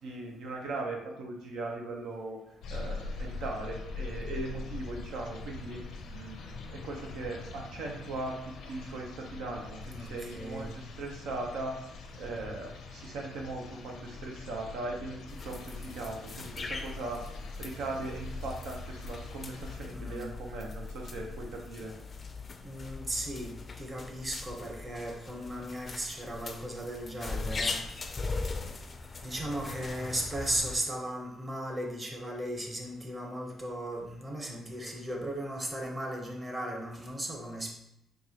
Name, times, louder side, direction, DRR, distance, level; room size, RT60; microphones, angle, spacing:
voice 1, 0.0-2.4 2.7-11.8 12.2-15.2 15.4-17.2 17.6-21.9, right 2 dB, 85° right, 0 dB, 0.8 m, -39 dB
sound 1, 2.6-19.8, left 3 dB, 80° left, 0.6 m, -43 dB
voice 2, 9.9-10.8 19.9-20.3 22.6-27.8 29.2-37.7, right 1 dB, 25° right, 1 dB, 0.9 m, -36 dB
sound 2, 15.3-30.8, left 3 dB, 35° left, 0.4 m, -40 dB
4.6 x 2.5 x 2.9 m, 0.80 s
cardioid pair, 90°, 0 cm